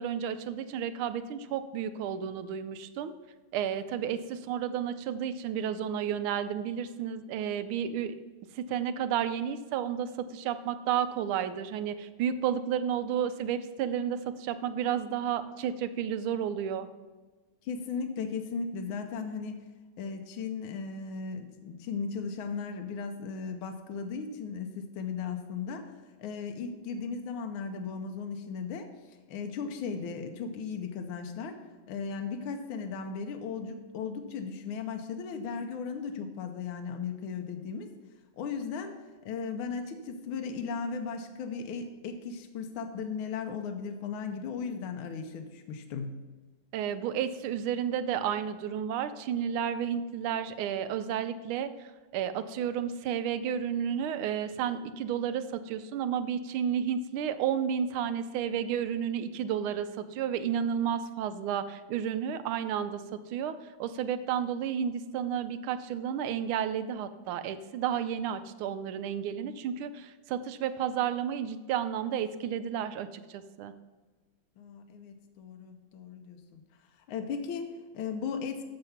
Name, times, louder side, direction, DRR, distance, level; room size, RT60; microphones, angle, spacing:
voice 1, 0.0-3.1 3.5-8.2 8.5-16.9 46.7-63.0 63.3-73.7, right 8 dB, 85° right, 11 dB, 1.5 m, -32 dB
voice 2, 17.6-19.5 20.0-25.9 26.2-28.9 29.3-31.6 31.9-37.9 38.4-39.0 39.2-46.1 74.6-76.6 77.1-78.6, left 5 dB, 80° left, 5 dB, 1.5 m, -36 dB
7.0 x 6.8 x 5.6 m, 1.3 s
omnidirectional pair, 2.3 m